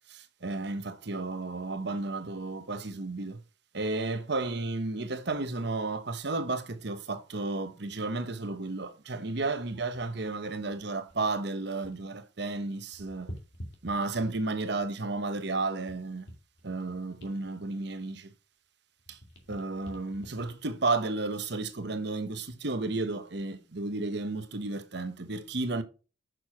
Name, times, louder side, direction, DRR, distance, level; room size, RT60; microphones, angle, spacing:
voice 1, 0.1-3.4 3.7-13.3 13.8-16.3 16.6-18.3 19.1-19.2 19.5-25.8, right 3 dB, 60° right, 1.1 m, -33 dB
sound 1, 11.1-12.2 12.4-14.6 15.1-18.7 19.0-21.8 22.3-22.5, equal, 65° left, 2.4 m, -49 dB
6.7 x 6.2 x 4.9 m
head